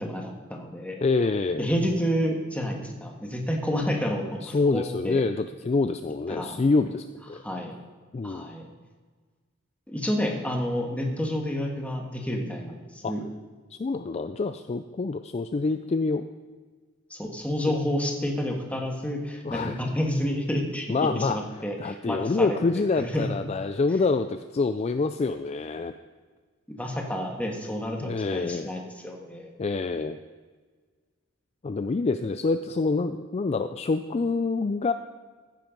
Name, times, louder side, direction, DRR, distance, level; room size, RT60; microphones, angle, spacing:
voice 1, 0.0-1.0 1.6-5.2 6.3-6.6 7.4-7.7 8.2-8.7 9.9-12.8 13.1-13.2 17.1-22.6 23.0-23.3 26.7-29.5, equal, 5° left, 1 dB, 1.5 m, -29 dB
voice 2, 1.0-1.7 4.4-7.4 8.1-8.5 13.0-13.1 13.7-16.3 17.7-17.8 19.4-19.8 20.9-21.4 21.8-25.9 28.0-28.7 29.6-30.2 31.6-34.9, left 3 dB, 30° left, 9 dB, 0.3 m, -26 dB
14.5 x 7.6 x 5.2 m, 1.5 s
head